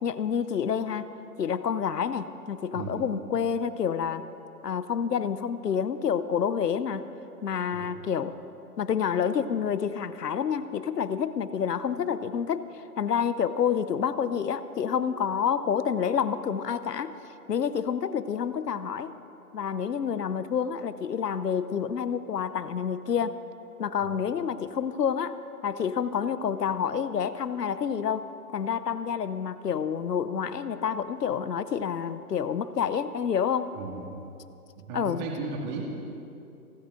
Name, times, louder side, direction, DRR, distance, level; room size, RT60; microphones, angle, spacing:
voice 1, 0.0-1.1 1.4-4.3 4.6-7.0 7.4-8.3 8.8-17.1 17.5-19.1 19.5-23.4 23.8-25.4 25.6-33.7 34.9-35.2, left 7 dB, 85° left, 14 dB, 0.9 m, -28 dB
voice 2, 2.7-3.0 7.7-7.9 24.0-24.1 33.7-34.2 34.8-35.8, right 4 dB, 30° right, -1 dB, 2.0 m, -35 dB
28.5 x 9.8 x 3.8 m, 2.7 s
hypercardioid pair, 150°, 47 cm